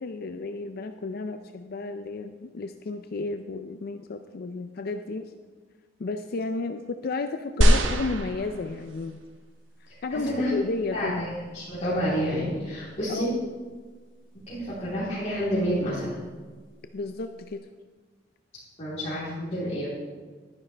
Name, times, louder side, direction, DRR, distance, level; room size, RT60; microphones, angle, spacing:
voice 1, 0.0-5.3 6.0-9.2 10.0-11.2 13.1-13.4 16.9-17.6, left 3 dB, 55° left, 8 dB, 0.4 m, -32 dB
sound 1, 7.6-9.1 9.9-10.0, right 1 dB, 75° right, 1.0 m, -22 dB
voice 2, 10.1-10.5 10.9-13.3 14.3-16.2 18.8-19.9, equal, 35° left, -11 dB, 3.5 m, -29 dB
12.0 x 10.5 x 3.3 m, 1.4 s
head